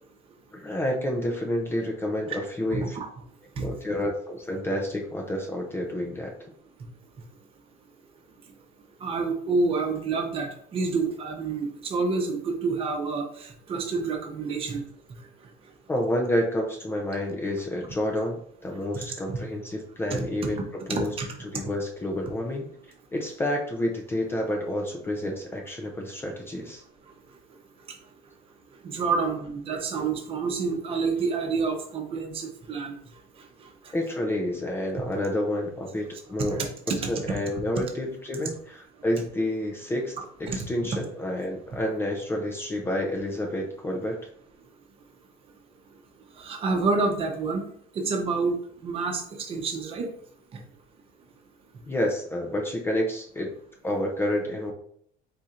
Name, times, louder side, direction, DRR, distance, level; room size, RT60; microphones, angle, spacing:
voice 1, 0.5-3.0 3.6-6.5 15.9-21.1 21.4-22.7 23.1-26.8 33.9-36.6 37.1-44.2 51.9-53.5 53.8-54.7, left 1 dB, 15° left, 1 dB, 0.5 m, -29 dB
voice 2, 2.7-3.1 3.6-3.7 9.0-14.8 19.3-19.4 20.1-20.2 20.9-21.2 28.8-33.0 33.6-33.7 36.5-36.6 36.9-37.1 40.5-40.6 46.4-47.7 47.9-48.6 48.8-50.1, right 4 dB, 30° right, 2 dB, 0.8 m, -28 dB
4.3 x 4.1 x 2.5 m, 0.63 s
cardioid pair, 165°, 18 cm